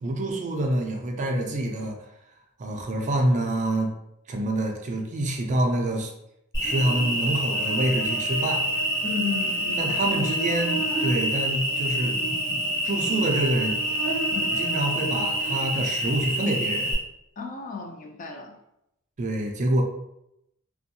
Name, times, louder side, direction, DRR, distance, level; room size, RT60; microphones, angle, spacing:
voice 1, 0.0-2.0 2.6-3.9 4.3-6.1 6.6-8.6 9.8-12.1 12.8-13.7 14.6-16.9 19.2-19.8, right 1 dB, 35° right, 2 dB, 0.4 m, -26 dB
Cricket, 6.5-16.9, right 1 dB, 15° left, 1.4 m, -27 dB
voice 2, 9.0-9.9 14.3-14.5 17.4-18.6, left 5 dB, 35° left, 2 dB, 0.4 m, -33 dB
2.5 x 2.2 x 2.6 m, 0.82 s
head